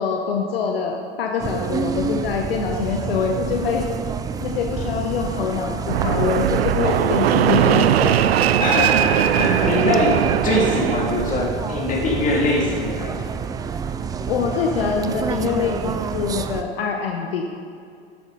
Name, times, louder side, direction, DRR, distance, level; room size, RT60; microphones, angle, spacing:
voice 1, 0.0-3.9 4.4-8.2 8.8-8.9 14.3-17.5, left 6 dB, 70° left, 2 dB, 1.1 m, -24 dB
sound 1, 1.4-16.6, right 6 dB, 15° right, 0.3 m, -29 dB
Fixed-wing aircraft airplane, 5.9-11.5, right 10 dB, 80° right, 0.5 m, -20 dB
voice 2, 8.6-10.2 10.4-13.1, left 2 dB, 25° left, -2 dB, 2.7 m, -22 dB
14.0 x 8.4 x 4.1 m, 2.3 s
hypercardioid pair, 95°, 31 cm